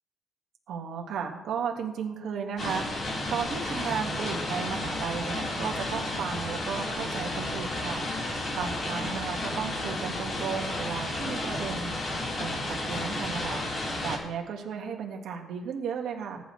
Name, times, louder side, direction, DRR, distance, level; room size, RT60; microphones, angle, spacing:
voice 1, 0.7-16.5, right 6 dB, 60° right, 1 dB, 1.7 m, -35 dB
Household - Rain on Conservatory Roof, 2.6-14.2, left 1 dB, 35° left, 3.9 m, -32 dB
19.5 x 10.0 x 3.2 m, 1.1 s
cardioid pair, 160°, 0 cm